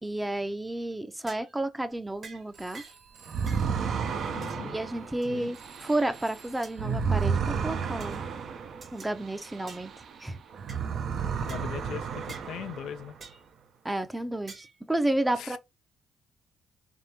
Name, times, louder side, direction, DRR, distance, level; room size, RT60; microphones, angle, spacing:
voice 1, 0.0-2.8 4.6-8.2 8.9-9.9 10.2-10.4 13.8-15.6, right 1 dB, 10° right, 0.6 m, -31 dB
sound 1, 0.7-0.9 1.3-1.6 2.2-2.4 2.7-3.0 3.5-3.7 4.4-4.7 5.2-5.7 6.3-6.8 7.2-7.5 8.0-8.2 8.8-9.1 9.7-9.9 10.7-10.8 11.5-11.7 12.3-12.5 13.2-13.5 14.5-14.8, right 4 dB, 45° right, 1.0 m, -48 dB
Telephone, 2.5-8.1, right 6 dB, 85° right, 1.5 m, -57 dB
sound 2, 3.3-10.2 10.5-13.2, right 6 dB, 60° right, 0.6 m, -32 dB
voice 2, 4.3-4.8 5.2-5.5 11.4-13.2 15.4-15.6, left 9 dB, 80° left, 0.4 m, -40 dB
3.6 x 3.2 x 2.7 m
cardioid pair, 90°, 0 cm